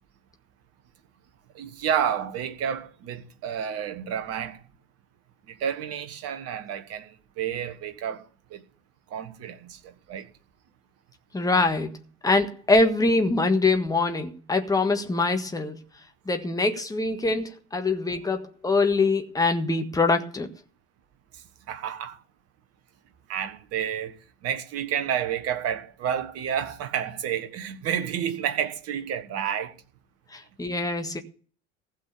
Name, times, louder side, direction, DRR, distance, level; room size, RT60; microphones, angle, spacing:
voice 1, 1.5-4.6 5.6-8.2 8.5-8.6 9.1-10.3 21.7-22.2 23.3-24.2 24.4-29.7, right 9 dB, 40° right, 1.5 m, -30 dB
voice 2, 11.3-12.0 12.2-15.8 16.2-20.5 30.3-31.2, left 3 dB, 10° left, 1.5 m, -24 dB
15.5 x 6.4 x 6.8 m
figure-of-eight pair, 65°, 36 cm